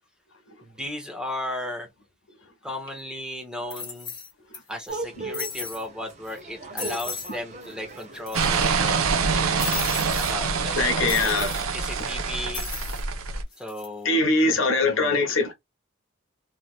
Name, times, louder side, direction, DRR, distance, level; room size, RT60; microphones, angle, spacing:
voice 1, 0.6-1.9 2.6-4.1 4.7-11.4 11.7-12.7 13.6-14.3 14.8-15.2, left 1 dB, 5° right, 1.0 m, -36 dB
sound 1, 2.9-3.0 3.7-4.6 4.9-5.0 5.3-5.8 6.3-6.4 6.8-7.3 7.6-7.7 8.0-8.7 9.6-10.3 11.1-11.6 12.5-13.0 13.5-13.9, left 5 dB, 20° left, 1.4 m, -35 dB
sound 2, 4.9-11.8, right 2 dB, 35° right, 0.9 m, -40 dB
sound 3, 8.3-13.4, right 5 dB, 85° right, 0.6 m, -25 dB
voice 2, 10.8-11.6 14.0-15.5, left 3 dB, 65° left, 1.1 m, -22 dB
3.3 x 2.8 x 2.4 m
head